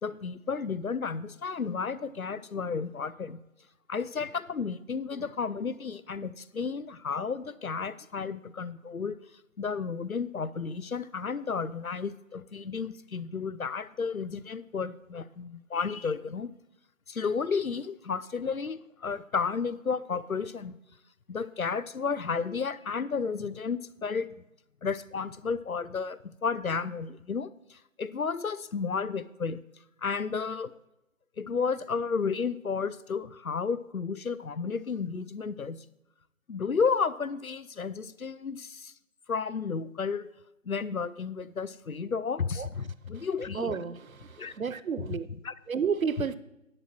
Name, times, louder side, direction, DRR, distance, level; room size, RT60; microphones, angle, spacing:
voice 1, 0.0-3.4 3.9-9.2 9.6-16.5 17.1-20.8 21.3-24.4 24.8-29.6 30.0-30.7 31.4-35.8 36.5-38.9 39.3-40.3 40.7-43.8 44.4-44.5 45.4-45.5, left 5 dB, 85° left, 17 dB, 0.7 m, -32 dB
voice 2, 43.5-45.3 45.7-46.4, right 6 dB, 80° right, 15 dB, 0.7 m, -31 dB
11.0 x 7.7 x 4.5 m, 0.90 s
figure-of-eight pair, 180°, 41 cm